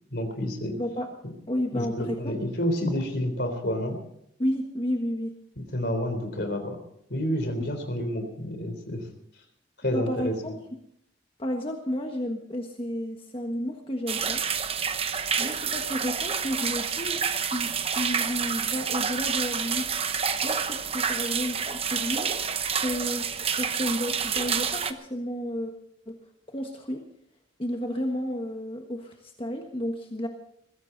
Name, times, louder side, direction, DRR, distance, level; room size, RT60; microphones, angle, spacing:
voice 1, 0.1-0.8 1.2-1.3 1.7-4.0 5.6-6.8 7.1-9.0 9.8-10.5, equal, 60° left, 7 dB, 3.7 m, -29 dB
voice 2, 0.7-1.1 1.5-2.4 4.4-5.3 9.9-10.6 11.4-14.4 15.4-17.2 17.5-19.9 20.4-22.3 22.7-25.7 26.1-26.2 26.5-27.0 27.6-30.3, equal, 30° left, 3 dB, 1.4 m, -32 dB
sound 1, 14.1-24.9, right 7 dB, 30° right, 0.9 m, -28 dB
21.5 x 15.5 x 4.0 m, 0.71 s
head